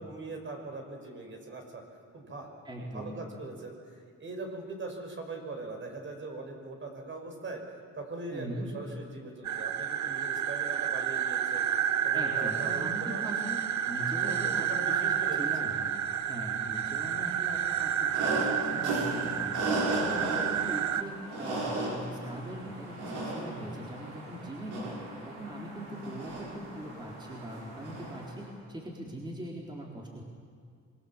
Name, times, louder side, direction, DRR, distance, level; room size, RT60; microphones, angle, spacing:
voice 1, 0.0-1.8 2.1-2.5 2.8-7.6 8.0-11.7 12.0-13.2 14.2-15.8, right 3 dB, 40° right, 2 dB, 5.7 m, -41 dB
voice 2, 2.6-3.1 8.3-8.7 12.1-13.6 13.9-15.9 16.3-19.7 20.0-25.0 25.3-30.2, right 1 dB, 15° right, -2 dB, 3.9 m, -41 dB
sound 1, 9.4-21.0, right 9 dB, 65° right, 1.1 m, -30 dB
sound 2, 18.1-28.4, right 2 dB, 85° right, 7.8 m, -36 dB
26.5 x 21.5 x 7.3 m, 2.2 s
cardioid pair, 90°, 30 cm